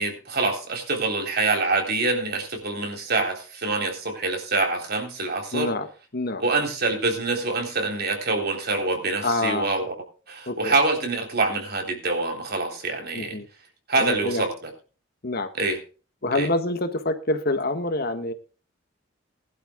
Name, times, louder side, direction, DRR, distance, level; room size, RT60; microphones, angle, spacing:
voice 1, 0.0-5.7 6.4-10.0 10.3-13.4 13.9-14.7 15.5-15.8 16.3-16.5, right 3 dB, 55° right, 4 dB, 3.7 m, -25 dB
voice 2, 5.5-5.9 6.1-6.4 9.2-9.7 10.5-10.8 13.1-13.5 14.0-14.4 15.2-15.5 16.2-18.3, left 2 dB, 50° left, 8 dB, 1.6 m, -26 dB
20.5 x 11.5 x 2.3 m, 0.34 s
head